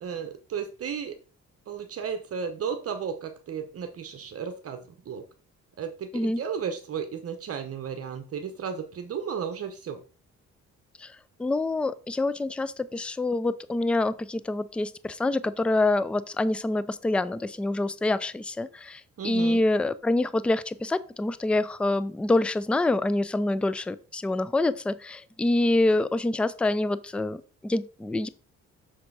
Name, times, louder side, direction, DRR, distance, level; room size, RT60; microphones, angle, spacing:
voice 1, 0.0-1.2 1.7-5.2 5.8-10.0 19.2-19.6, right 7 dB, 50° right, 8 dB, 0.8 m, -34 dB
voice 2, 11.4-28.3, left 2 dB, 5° left, 16 dB, 0.3 m, -26 dB
6.4 x 3.8 x 4.6 m, 0.39 s
cardioid pair, 90°, 30 cm